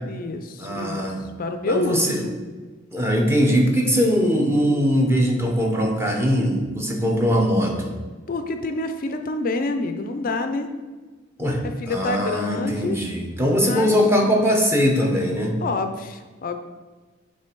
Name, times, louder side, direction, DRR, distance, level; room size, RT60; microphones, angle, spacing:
voice 1, 0.0-1.1 1.4-2.3 8.3-10.7 11.6-13.0 13.6-14.0 15.6-16.6, left 3 dB, 45° left, 7 dB, 0.4 m, -27 dB
voice 2, 0.6-1.3 1.7-2.3 2.9-7.9 11.4-15.5, equal, 10° right, 0 dB, 0.9 m, -21 dB
7.7 x 3.3 x 4.5 m, 1.3 s
head